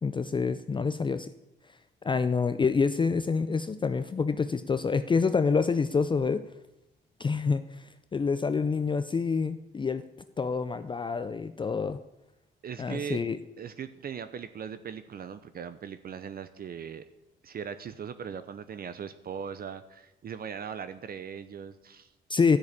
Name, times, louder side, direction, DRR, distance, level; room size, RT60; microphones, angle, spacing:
voice 1, 0.0-1.3 2.0-6.4 7.2-10.0 10.4-12.0 12.8-13.4 22.3-22.6, left 5 dB, 25° left, 11 dB, 0.5 m, -27 dB
voice 2, 12.6-13.2 13.6-17.0 17.4-22.1, right 7 dB, 50° right, 12 dB, 0.7 m, -39 dB
12.5 x 6.4 x 8.6 m, 0.94 s
cardioid pair, 90°, 20 cm